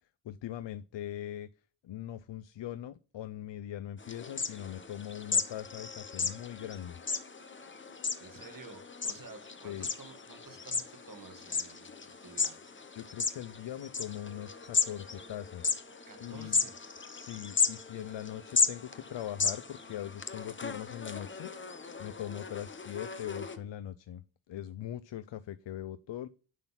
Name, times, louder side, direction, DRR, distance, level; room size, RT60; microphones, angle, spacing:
voice 1, 0.2-1.5 1.8-7.0 9.6-9.9 12.9-15.7 16.2-16.6 17.1-21.5 22.0-26.3, left 11 dB, 65° left, 15 dB, 0.6 m, -41 dB
sound 1, 4.0-23.6, left 5 dB, 25° left, 0.9 m, -35 dB
voice 2, 8.2-12.6 16.1-16.8, right 4 dB, 45° right, 5 dB, 2.1 m, -51 dB
11.0 x 4.0 x 5.8 m, 0.36 s
wide cardioid pair, 125°, 46 cm